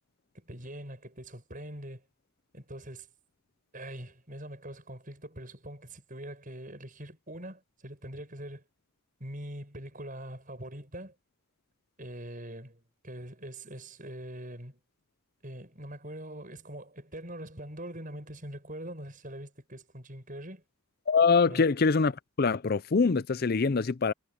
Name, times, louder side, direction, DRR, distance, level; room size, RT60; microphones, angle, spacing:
voice 1, 0.3-2.0 2.5-3.1 3.7-8.6 9.2-11.1 12.0-14.8 15.4-20.6 21.5-21.7, right 1 dB, 35° right, 7.0 m, -43 dB
voice 2, 21.1-22.1 22.4-24.1, left 4 dB, 45° left, 0.5 m, -24 dB
head